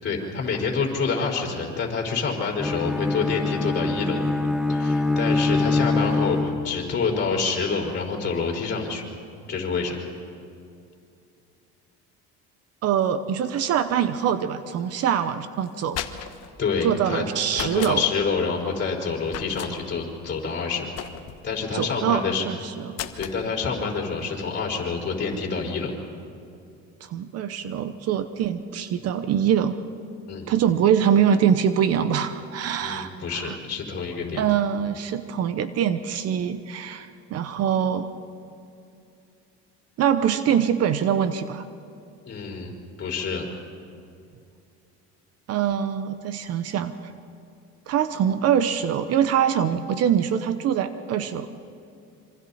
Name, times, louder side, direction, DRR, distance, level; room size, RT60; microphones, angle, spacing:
voice 1, 0.0-4.2 4.7-9.0 9.5-10.0 16.6-17.2 17.6-20.9 21.4-22.5 23.2-25.9 30.3-30.5 32.8-34.4 42.3-43.5, left 5 dB, 35° left, -1 dB, 5.1 m, -27 dB
Bowed string instrument, 2.6-7.0, left 3 dB, ahead, 1.3 m, -24 dB
voice 2, 12.8-16.0 16.8-18.0 21.7-23.0 27.0-29.7 30.5-33.6 34.4-38.1 40.0-41.6 45.5-46.9 47.9-51.5, right 9 dB, 55° right, 11 dB, 1.0 m, -24 dB
sound 1, 15.7-16.5 17.5-18.0 19.3-19.7 21.0-21.5 22.9-23.4, left 11 dB, 55° left, 1.2 m, -34 dB
26.5 x 25.0 x 4.3 m, 2.5 s
cardioid pair, 125°, 30 cm